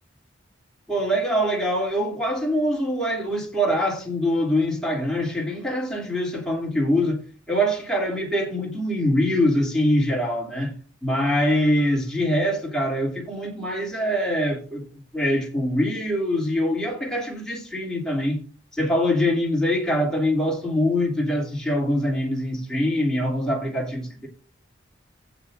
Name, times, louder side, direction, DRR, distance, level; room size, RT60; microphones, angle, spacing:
voice 1, 0.9-10.7 11.0-18.4 18.7-24.3, equal, 5° left, 2.9 m, -24 dB
16.5 x 8.2 x 2.5 m
head